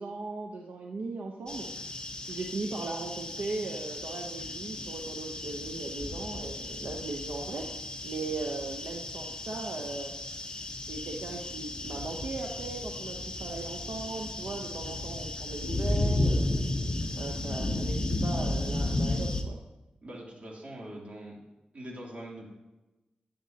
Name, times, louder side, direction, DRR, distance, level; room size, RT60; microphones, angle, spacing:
voice 1, 0.0-1.7 2.3-7.7 8.0-10.2 10.9-16.5 17.2-19.6, right 3 dB, 85° right, 1 dB, 0.8 m, -38 dB
sound 1, 1.5-19.4, left 2 dB, 30° left, 1.0 m, -34 dB
voice 2, 20.0-21.4 21.7-22.5, right 1 dB, 50° right, -3 dB, 2.9 m, -43 dB
10.5 x 10.5 x 2.8 m, 1.1 s
cardioid pair, 75°, 3 cm